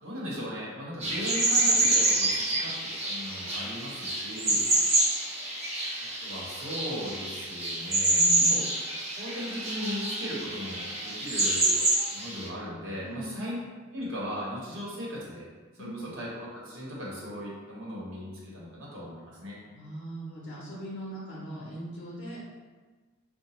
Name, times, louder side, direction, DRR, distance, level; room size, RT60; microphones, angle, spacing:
voice 1, 0.0-4.7 6.2-8.6 9.2-11.8 12.1-13.6 13.9-15.5 15.7-19.6, equal, 60° right, -5 dB, 1.0 m, -38 dB
sound 1, 1.0-12.5, right 2 dB, 30° right, 0.8 m, -27 dB
voice 2, 8.1-8.6 13.0-13.5 15.8-16.1 19.7-22.4, right 1 dB, 55° left, -6 dB, 0.6 m, -39 dB
3.9 x 2.1 x 2.9 m, 1.4 s
head